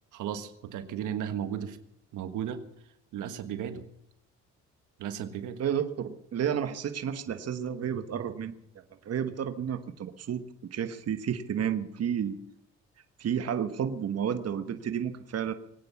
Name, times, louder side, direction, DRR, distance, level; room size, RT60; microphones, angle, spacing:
voice 1, 0.1-1.8 2.1-2.6 3.1-3.8 5.0-5.6, right 9 dB, 85° right, 9 dB, 1.5 m, -35 dB
voice 2, 5.6-8.5 9.0-10.4 10.7-12.4 13.2-15.5, right 8 dB, 55° right, 9 dB, 1.2 m, -31 dB
21.5 x 9.2 x 7.0 m, 0.78 s
cardioid pair, 90°, 30 cm